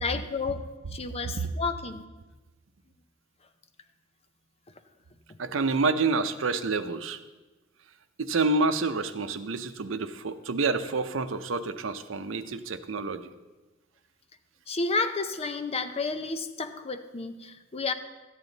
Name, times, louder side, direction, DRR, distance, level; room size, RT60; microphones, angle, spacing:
voice 1, 0.0-0.6 0.9-2.0 14.7-17.9, left 4 dB, 30° left, 9 dB, 0.6 m, -31 dB
voice 2, 5.4-7.2 8.2-13.3, right 3 dB, 90° right, 11 dB, 0.6 m, -28 dB
13.5 x 9.0 x 4.0 m, 1.2 s
head